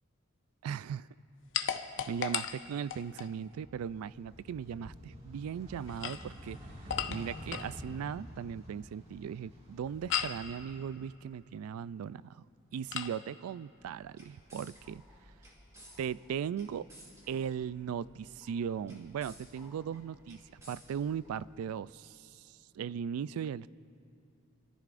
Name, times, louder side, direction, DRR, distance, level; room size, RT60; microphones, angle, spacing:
voice 1, 0.6-1.1 2.1-6.6 6.8-12.4 12.7-15.0 16.0-16.9 17.3-20.4 20.7-23.7, right 8 dB, 85° right, 18 dB, 0.3 m, -38 dB
sound 1, 1.5-3.3 5.8-7.8 10.1-10.5 12.9-13.2, left 9 dB, 60° left, 0.6 m, -36 dB
sound 2, 3.4-11.4 11.8-12.9, equal, 30° right, 2.0 m, -49 dB
sound 3, 13.7-21.8, equal, 15° right, 2.4 m, -57 dB
28.5 x 14.0 x 2.5 m, 2.7 s
head